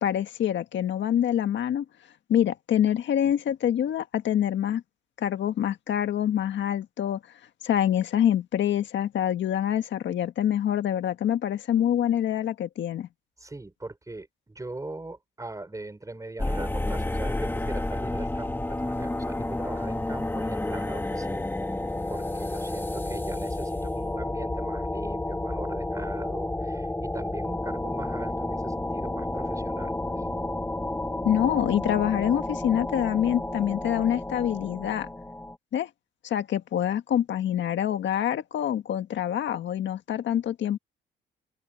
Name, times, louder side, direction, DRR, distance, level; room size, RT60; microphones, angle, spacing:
voice 1, 0.0-1.8 2.3-4.8 5.2-7.2 7.6-13.1 31.2-35.1 35.7-35.9 36.2-40.8, left 10 dB, 70° left, 1.6 m, -26 dB
voice 2, 13.4-21.5 22.1-30.2, right 2 dB, 15° right, 6.7 m, -40 dB
sound 1, 16.4-35.6, left 1 dB, 10° left, 1.9 m, -31 dB
open air
cardioid pair, 90°, 20 cm